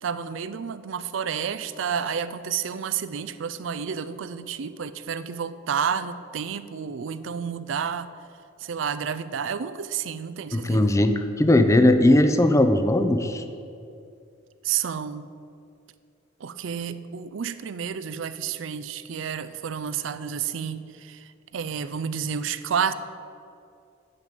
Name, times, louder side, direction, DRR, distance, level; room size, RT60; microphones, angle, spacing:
voice 1, 0.0-8.1 8.6-11.0 14.6-15.3 16.4-22.9, right 7 dB, 80° right, 13 dB, 0.4 m, -30 dB
voice 2, 10.5-13.4, left 1 dB, 15° left, 8 dB, 0.5 m, -19 dB
9.6 x 5.2 x 7.4 m, 2.5 s
head